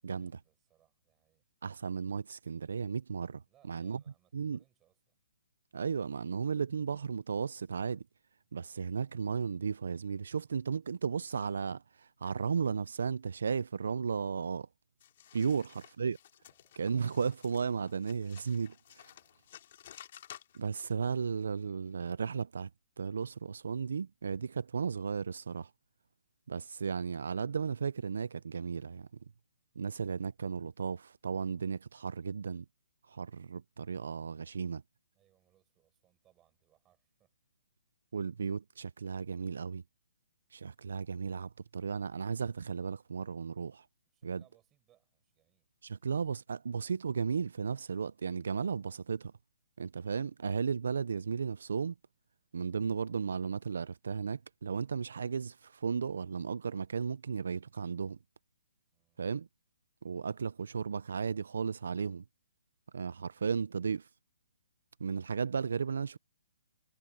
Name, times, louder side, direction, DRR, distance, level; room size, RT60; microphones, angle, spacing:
voice 1, 0.0-1.4 3.5-5.2 16.4-16.9 19.1-19.6 35.1-37.3 44.1-45.7 58.9-59.2, right 13 dB, 10° right, 7.2 m, -72 dB
voice 2, 1.6-3.4 3.7-4.0 4.3-4.6 5.7-8.0 8.5-14.7 15.3-16.2 16.8-19.1 20.5-22.7 23.0-25.7 26.5-29.1 29.8-32.6 33.1-34.8 38.1-39.8 40.5-43.9 44.2-44.4 45.8-49.3 49.8-51.9 52.5-58.2 59.2-59.5 60.0-62.2 62.9-64.1 65.0-66.2, right 6 dB, 65° right, 0.4 m, -35 dB
sound 1, 15.0-20.9, left 11 dB, 35° left, 2.2 m, -54 dB
hypercardioid pair, 180°, 0 cm